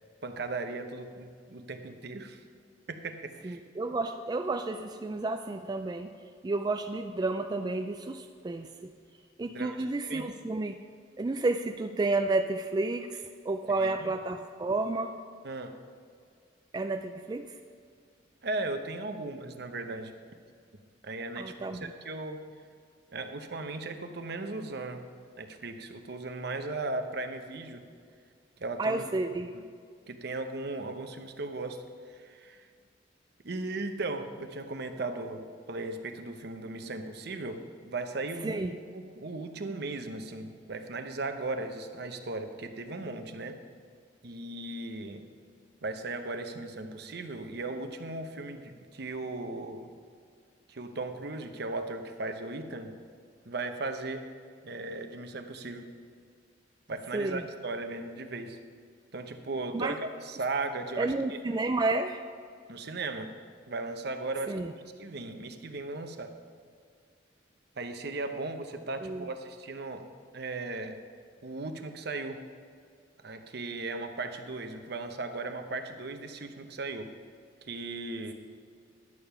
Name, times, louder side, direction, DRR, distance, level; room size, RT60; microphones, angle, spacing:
voice 1, 0.2-2.4 2.9-3.6 9.5-10.2 13.8-14.1 15.4-15.7 18.4-20.1 21.0-22.4 23.1-25.1 25.4-27.8 28.6-29.0 29.5-29.6 30.1-32.7 33.4-38.6 38.9-43.6 44.2-45.2 45.8-49.9 50.7-52.9 53.4-54.3 54.6-55.9 56.9-58.6 59.1-61.4 62.7-63.3 63.7-64.7 65.0-66.3 67.8-70.1 70.3-71.0 71.4-72.4 73.2-77.1 77.7-78.3, right 2 dB, 60° right, 7 dB, 0.8 m, -37 dB
voice 2, 3.4-6.1 6.4-8.9 9.4-10.8 11.2-15.1 16.7-17.5 21.4-21.9 28.8-29.5 38.4-38.8 57.1-57.4 59.7-60.0 61.0-62.2 64.5-64.7 69.0-69.3, right 2 dB, 20° right, 6 dB, 0.3 m, -31 dB
11.0 x 6.9 x 5.5 m, 2.2 s
head